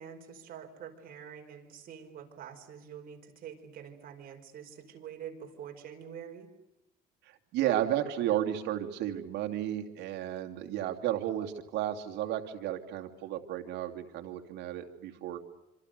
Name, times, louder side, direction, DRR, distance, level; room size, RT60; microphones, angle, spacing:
voice 1, 0.0-6.5, right 8 dB, 60° right, 2 dB, 5.2 m, -46 dB
voice 2, 7.2-15.4, right 12 dB, 85° right, 5 dB, 2.7 m, -33 dB
26.5 x 26.5 x 6.8 m, 0.96 s
cardioid pair, 110°, 17 cm